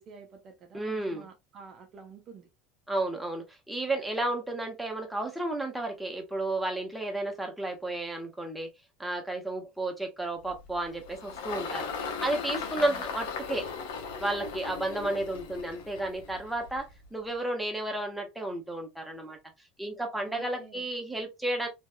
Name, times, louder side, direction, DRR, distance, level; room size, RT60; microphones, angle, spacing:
voice 1, 0.0-2.5 12.7-13.0 20.2-20.8, right 5 dB, 45° right, 0.7 m, -49 dB
voice 2, 0.7-1.3 2.9-8.7 9.0-11.9 12.2-13.7 14.2-19.4 19.8-21.7, right 2 dB, 5° right, 1.0 m, -32 dB
Engine, 10.5-17.1, left 5 dB, 80° left, 0.8 m, -38 dB
3.0 x 2.5 x 2.2 m
supercardioid pair, 100°, 0 cm